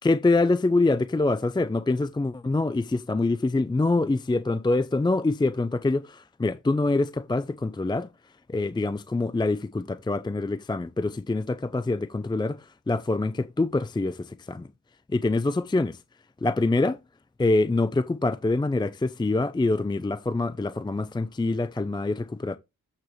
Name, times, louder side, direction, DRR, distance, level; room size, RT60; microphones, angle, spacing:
voice 1, 0.0-8.1 8.5-14.7 15.1-16.0 16.4-17.0 17.4-22.6, left 2 dB, 15° left, 0.5 m, -25 dB
8.2 x 6.4 x 3.1 m
cardioid pair, 55°, 32 cm